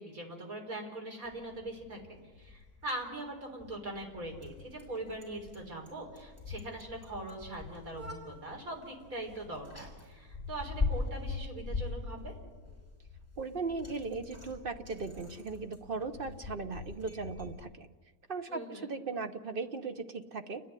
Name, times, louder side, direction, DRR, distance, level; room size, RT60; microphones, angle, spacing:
voice 1, 0.0-12.3 18.5-18.9, right 1 dB, 65° right, 0 dB, 4.6 m, -42 dB
Bicycle, 1.2-17.5, left 4 dB, 10° right, 5.3 m, -42 dB
voice 2, 13.4-17.9 18.3-20.6, right 4 dB, 45° right, 8 dB, 0.9 m, -38 dB
29.5 x 10.5 x 9.9 m, 1.4 s
omnidirectional pair, 1.6 m